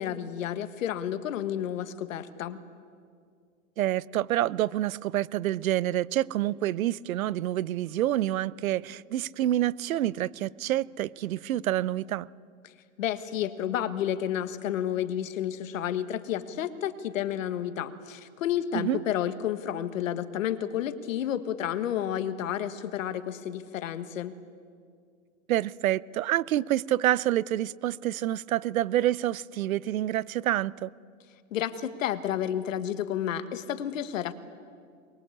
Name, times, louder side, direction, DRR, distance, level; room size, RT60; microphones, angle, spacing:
voice 1, 0.0-2.6 13.0-24.3 31.5-34.3, left 10 dB, 70° left, 1.6 m, -31 dB
voice 2, 3.8-12.3 18.7-19.0 25.5-30.9, right 13 dB, 85° right, 0.7 m, -27 dB
23.0 x 22.0 x 8.6 m
hypercardioid pair, 140°, 40 cm